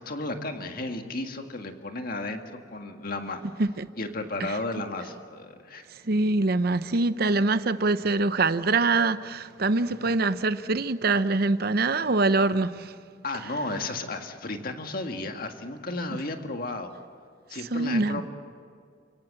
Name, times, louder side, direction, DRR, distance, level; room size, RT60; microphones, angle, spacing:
voice 1, 0.0-3.4 4.0-5.9 13.2-16.9 17.5-18.2, left 2 dB, 50° left, 1.9 m, -33 dB
voice 2, 6.0-12.9 17.7-18.2, right 3 dB, 55° right, 0.8 m, -24 dB
29.5 x 16.5 x 7.7 m
head